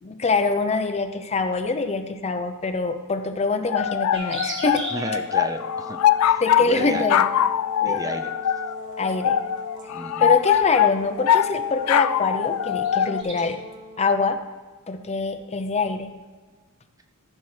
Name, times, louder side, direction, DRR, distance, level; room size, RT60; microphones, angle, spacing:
voice 1, 0.0-4.8 6.4-7.3 7.8-8.0 9.0-9.4 10.2-13.6 14.0-14.4 14.9-16.1, left 3 dB, 30° left, 7 dB, 0.6 m, -24 dB
sound 1, 3.7-13.2, left 10 dB, 75° left, 0.3 m, -22 dB
sound 2, 4.1-5.2 6.7-7.0 8.5-8.9 9.6-9.8 10.5-10.6 11.3-11.4 11.6-11.9 12.2-13.4, right 2 dB, 55° right, 1.6 m, -36 dB
voice 2, 4.9-7.0 7.8-8.3 9.9-10.3, right 2 dB, 15° right, 7 dB, 0.5 m, -33 dB
Brass instrument, 5.2-14.2, left 1 dB, ahead, 2.8 m, -43 dB
13.5 x 5.8 x 3.2 m, 1.4 s
head